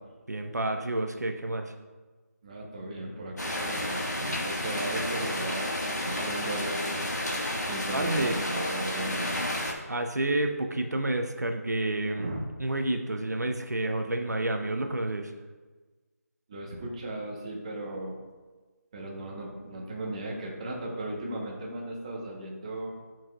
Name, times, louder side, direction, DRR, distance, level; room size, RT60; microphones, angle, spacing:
voice 1, 0.3-1.7 7.9-8.4 9.9-12.3 12.6-15.3, right 1 dB, 85° right, 5 dB, 0.8 m, -29 dB
voice 2, 2.4-7.1 7.7-9.4 12.1-12.4 16.5-18.1 18.9-22.9, right 1 dB, 25° right, -2 dB, 1.1 m, -36 dB
sound 1, 3.4-9.7, left 1 dB, 90° left, 1.7 m, -31 dB
10.0 x 6.0 x 2.4 m, 1.3 s
figure-of-eight pair, 165°, 9 cm